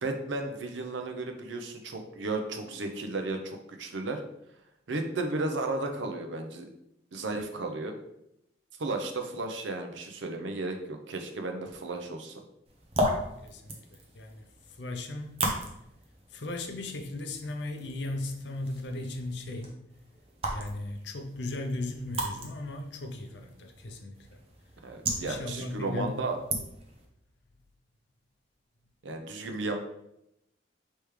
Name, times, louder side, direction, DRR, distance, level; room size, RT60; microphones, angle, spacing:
voice 1, 0.0-4.2 4.9-6.7 7.1-8.0 8.8-12.4 24.8-26.4 29.0-29.8, right 2 dB, 70° right, 4 dB, 0.6 m, -34 dB
sound 1, 12.7-27.1, right 1 dB, 30° right, 0.7 m, -37 dB
voice 2, 13.4-14.4 14.8-15.3 16.3-19.8 20.5-24.4 25.2-26.2, left 2 dB, 60° left, 3 dB, 0.6 m, -37 dB
3.4 x 3.1 x 4.7 m, 0.81 s
head